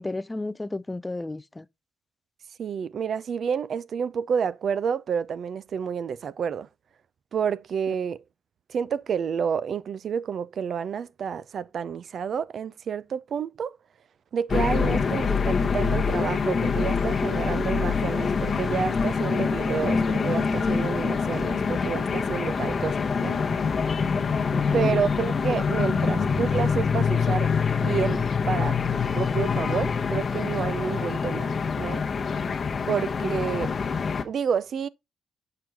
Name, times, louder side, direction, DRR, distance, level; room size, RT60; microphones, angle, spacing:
voice 1, 0.0-1.7 24.5-24.9, left 2 dB, 15° left, 0.3 m, -32 dB
voice 2, 2.6-6.7 7.3-8.2 8.7-13.7 14.3-23.4 24.7-27.5 27.8-31.5 31.8-32.0 32.9-33.7 34.2-34.9, right 7 dB, 55° right, 0.4 m, -29 dB
sound 1, 14.5-34.2, left 5 dB, 40° left, 0.9 m, -25 dB
6.7 x 4.6 x 3.4 m
cardioid pair, 90°, 0 cm